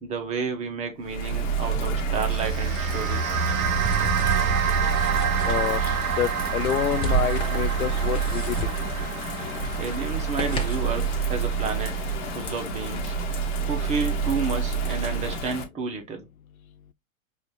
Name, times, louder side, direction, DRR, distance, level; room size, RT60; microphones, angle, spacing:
voice 1, 0.0-3.5 9.8-13.2 13.7-16.3, right 5 dB, 15° right, 0.6 m, -31 dB
Bird vocalization bird call bird song / Rain, 1.0-15.6, right 5 dB, 35° left, 1.1 m, -28 dB
sound 1, 1.5-11.0, right 2 dB, 15° left, 0.8 m, -35 dB
sound 2, 2.2-12.7, right 6 dB, 70° right, 0.7 m, -29 dB
voice 2, 5.5-8.8, left 10 dB, 85° left, 0.5 m, -28 dB
5.1 x 2.4 x 3.1 m
figure-of-eight pair, 110°, 41 cm